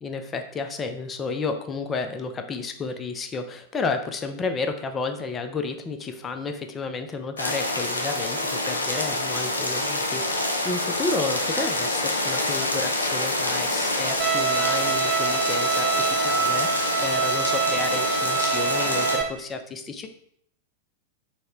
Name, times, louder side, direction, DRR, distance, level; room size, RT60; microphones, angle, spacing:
voice 1, 0.0-20.1, left 4 dB, 20° left, 7 dB, 0.4 m, -31 dB
sound 1, 7.4-19.2, left 2 dB, 80° left, 0.5 m, -26 dB
Bowed string instrument, 14.2-19.2, right 6 dB, 30° right, 0.5 m, -25 dB
4.1 x 2.1 x 3.7 m, 0.70 s
figure-of-eight pair, 95°, 0 cm